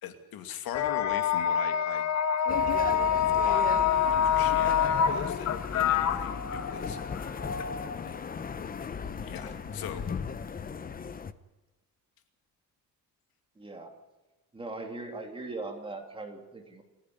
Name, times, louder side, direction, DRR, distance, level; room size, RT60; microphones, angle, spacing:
voice 1, 0.0-2.0 3.4-3.6 3.9-7.0 8.0-8.1 8.8-8.9 9.2-10.1, left 9 dB, 85° left, 7 dB, 2.5 m, -40 dB
sound 1, 0.7-8.1 8.9-10.4, left 7 dB, 50° left, 1.3 m, -27 dB
sound 2, 2.5-11.3, left 6 dB, 25° left, 0.8 m, -37 dB
voice 2, 13.6-13.9 14.5-16.8, right 2 dB, 15° right, 3 dB, 3.1 m, -39 dB
28.5 x 10.5 x 9.6 m, 1.1 s
cardioid pair, 160°, 35 cm